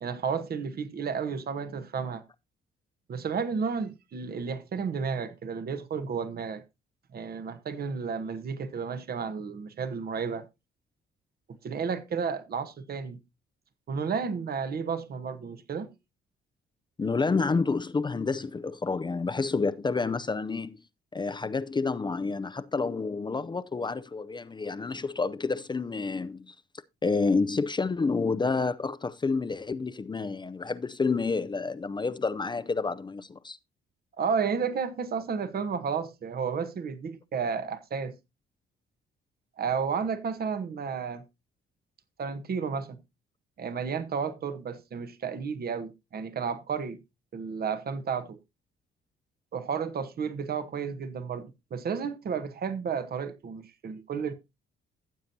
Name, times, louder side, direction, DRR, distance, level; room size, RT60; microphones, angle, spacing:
voice 1, 0.0-2.2 3.1-6.6 7.1-10.5 11.6-13.2 13.9-15.9 34.2-38.1 39.6-41.2 42.2-43.0 43.6-47.0 47.3-48.4 49.5-54.3, right 6 dB, 50° right, 1.2 m, -32 dB
voice 2, 17.0-20.8 21.1-26.5 27.0-33.6, left 4 dB, 20° left, 0.5 m, -29 dB
15.0 x 7.5 x 2.8 m
cardioid pair, 90°, 20 cm